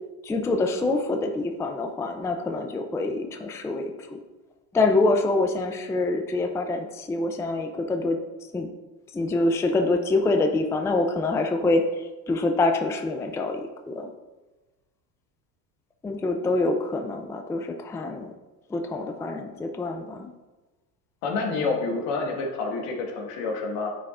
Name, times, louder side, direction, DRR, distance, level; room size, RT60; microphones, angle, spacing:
voice 1, 0.2-4.2 4.7-8.2 8.5-8.7 9.1-14.1 16.0-18.3 18.7-20.3, left 2 dB, 5° left, 5 dB, 0.4 m, -25 dB
voice 2, 21.2-23.9, left 3 dB, 75° left, 0 dB, 1.6 m, -28 dB
9.7 x 4.5 x 2.5 m, 1.1 s
hypercardioid pair, 85°, 49 cm